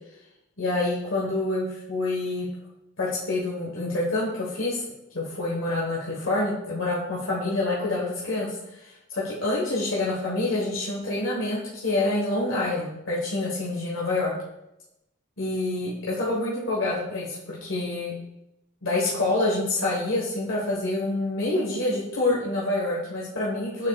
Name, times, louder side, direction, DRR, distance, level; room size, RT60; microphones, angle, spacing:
voice 1, 0.6-2.5 3.0-4.8 5.1-8.5 8.8-14.3 15.4-18.1 18.8-23.9, left 2 dB, 85° left, -5 dB, 1.3 m, -27 dB
7.1 x 6.4 x 2.3 m, 0.87 s
head